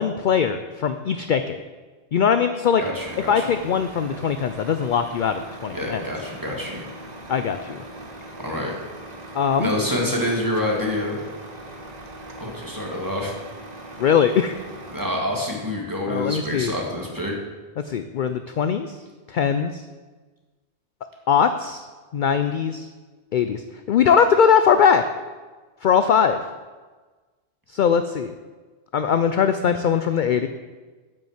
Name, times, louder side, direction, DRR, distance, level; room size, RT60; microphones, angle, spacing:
voice 1, 0.0-1.6 2.1-2.8 3.3-6.0 7.3-7.8 9.3-9.7 14.0-14.6 16.1-16.7 17.8-19.0 19.3-19.8 21.3-21.9 22.1-22.9 23.3-23.6 23.9-25.0 25.8-26.4 27.7-28.3 28.9-30.5, left 7 dB, 55° left, 9 dB, 0.6 m, -21 dB
voice 2, 2.8-3.5 5.7-6.9 8.4-8.7 9.6-11.2 12.4-13.3 14.9-17.3, left 1 dB, 15° right, -1 dB, 1.9 m, -27 dB
Truck, 3.0-15.0, right 1 dB, 40° right, 1.1 m, -40 dB
8.4 x 6.4 x 7.9 m, 1.3 s
omnidirectional pair, 1.2 m